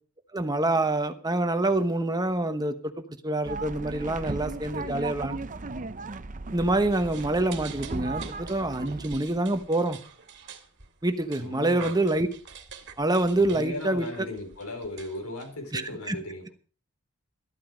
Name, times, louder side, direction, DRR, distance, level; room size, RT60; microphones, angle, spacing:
voice 1, 0.3-5.4 6.5-10.0 11.0-12.3 13.0-14.3 15.7-15.8 16.1-16.2, right 2 dB, 20° right, 8 dB, 1.0 m, -26 dB
sound 1, 3.5-9.0, right 3 dB, 35° right, 0.7 m, -36 dB
sound 2, 6.9-15.9, right 6 dB, 55° right, 2.1 m, -47 dB
voice 2, 11.4-11.9 13.4-16.5, left 1 dB, 75° left, 3 dB, 4.7 m, -37 dB
13.5 x 12.5 x 5.2 m, 0.40 s
head